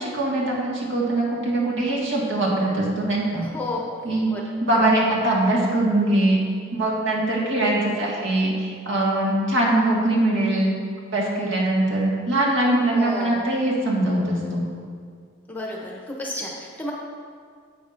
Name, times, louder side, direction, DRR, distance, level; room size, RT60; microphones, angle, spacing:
voice 1, 0.0-3.4 4.0-4.3 4.6-6.4 6.7-10.8 11.1-14.6, right 1 dB, 65° right, -4 dB, 1.8 m, -22 dB
voice 2, 3.4-4.4 12.9-13.5 15.5-16.9, left 1 dB, 10° left, -2 dB, 0.9 m, -32 dB
10.0 x 8.3 x 2.6 m, 2.1 s
head